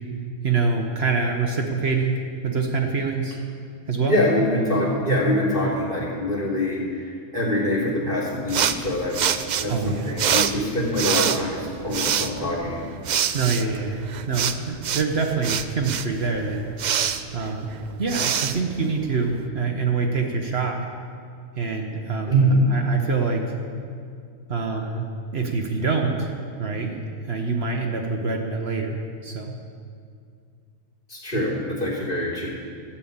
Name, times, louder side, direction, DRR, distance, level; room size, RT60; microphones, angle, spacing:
voice 1, 0.4-3.4 3.9-4.2 9.7-10.1 13.3-16.7 17.3-17.7 18.0-20.8 21.6-22.4 22.7-23.4 24.5-25.0 25.3-26.3 26.6-26.9 27.3-29.6, right 4 dB, 55° right, 2 dB, 1.2 m, -25 dB
voice 2, 4.1-7.1 7.3-12.8 22.3-22.6 31.1-32.5, equal, 40° left, -7 dB, 3.4 m, -24 dB
sound 1, 8.5-19.4, right 8 dB, 85° right, 0.4 m, -27 dB
13.0 x 7.3 x 8.6 m, 2.3 s
omnidirectional pair, 1.4 m